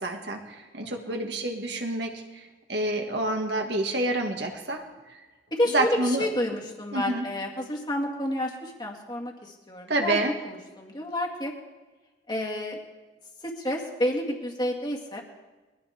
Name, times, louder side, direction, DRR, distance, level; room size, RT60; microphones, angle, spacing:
voice 1, 0.0-2.4 2.7-4.8 5.7-6.3 6.9-7.3 9.9-10.4, right 2 dB, 70° right, 2 dB, 2.0 m, -28 dB
voice 2, 0.8-1.3 5.5-10.2 10.5-11.5 12.3-12.8 13.4-15.2, left 1 dB, 25° left, 0 dB, 2.1 m, -30 dB
22.5 x 15.0 x 3.6 m, 1.2 s
head